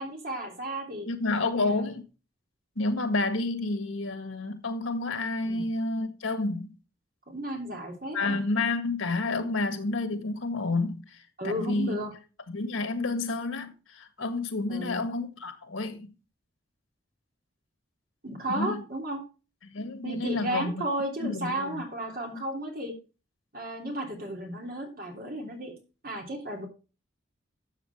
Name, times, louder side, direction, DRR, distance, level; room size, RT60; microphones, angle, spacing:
voice 1, 0.0-1.1 1.5-1.9 5.4-5.7 7.3-8.4 11.4-12.1 14.7-15.0 18.2-19.2 20.0-22.9 23.5-25.7 26.0-26.7, right 1 dB, 45° right, 3.3 m, -34 dB
voice 2, 1.1-2.1 2.7-6.8 8.1-12.0 12.5-16.1 18.5-18.8 19.6-20.8 21.2-21.8, left 3 dB, 85° left, 1.7 m, -30 dB
12.5 x 7.3 x 3.5 m
head